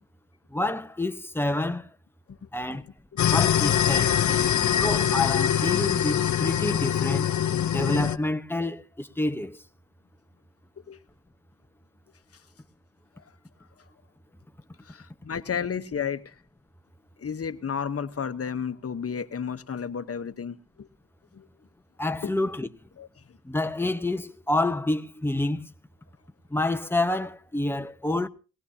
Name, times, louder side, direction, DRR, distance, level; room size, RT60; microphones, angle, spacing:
voice 1, 0.5-1.9 2.5-2.8 3.3-4.2 4.8-7.3 7.7-9.6 22.0-22.7 23.4-25.7 26.5-28.3, left 2 dB, 5° left, 0.9 m, -28 dB
sound 1, 3.2-8.2, left 9 dB, 65° left, 0.7 m, -23 dB
voice 2, 4.1-4.8 10.9-11.0 14.9-16.3 17.2-20.9 21.3-21.5 22.2-22.3 23.0-23.1, left 7 dB, 50° left, 1.1 m, -32 dB
20.0 x 18.5 x 2.8 m
cardioid pair, 90°, 31 cm